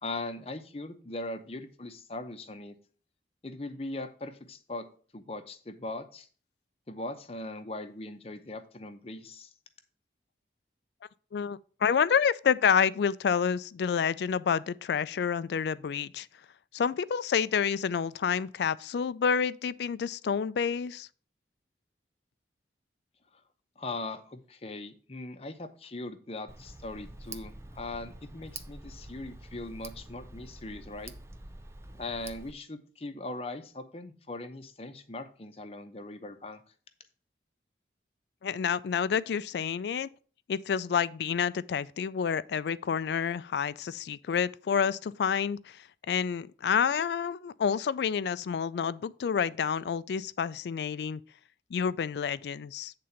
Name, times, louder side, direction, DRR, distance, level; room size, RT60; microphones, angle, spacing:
voice 1, 0.0-2.7 3.4-4.9 5.1-6.3 6.9-9.5 23.8-31.1 31.9-36.6, left 2 dB, 35° left, 0.7 m, -40 dB
voice 2, 11.3-16.3 16.7-21.1 38.4-40.1 40.5-51.2 51.7-52.9, left 7 dB, 70° left, 0.3 m, -29 dB
Tick, 26.5-32.5, right 2 dB, 15° right, 0.4 m, -46 dB
8.5 x 3.8 x 5.7 m
head